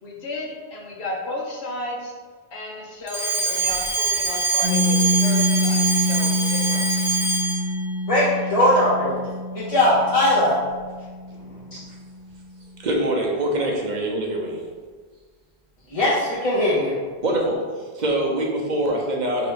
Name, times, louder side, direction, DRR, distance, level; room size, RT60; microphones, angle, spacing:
voice 1, 0.0-2.1 2.5-7.1, left 2 dB, 75° left, -1 dB, 1.1 m, -33 dB
Alarm, 3.1-7.7, right 3 dB, 5° right, 0.5 m, -24 dB
Piano, 4.6-11.9, left 1 dB, 85° right, 1.1 m, -26 dB
voice 2, 8.1-9.1 9.5-10.5 11.7-11.8 15.9-17.0, left 1 dB, 35° left, -8 dB, 0.8 m, -19 dB
voice 3, 12.8-14.6 17.2-19.5, right 1 dB, 50° right, -1 dB, 0.7 m, -24 dB
3.5 x 3.0 x 4.7 m, 1.5 s
omnidirectional pair, 1.1 m